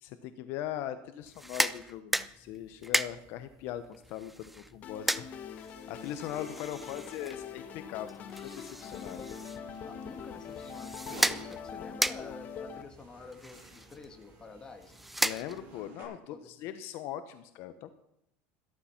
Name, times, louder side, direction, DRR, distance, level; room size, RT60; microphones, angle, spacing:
voice 1, 0.0-9.2 15.2-17.9, left 11 dB, 50° left, 11 dB, 0.9 m, -40 dB
sound 1, 1.2-15.9, right 1 dB, ahead, 0.4 m, -36 dB
sound 2, 4.8-12.8, left 7 dB, 30° left, 1.2 m, -43 dB
sound 3, 9.1-16.0, right 3 dB, 40° right, 7.0 m, -54 dB
voice 2, 9.8-15.0 16.3-16.5, left 3 dB, 15° left, 5 dB, 1.8 m, -49 dB
14.5 x 13.0 x 5.8 m, 0.81 s
cardioid pair, 170°, 5 cm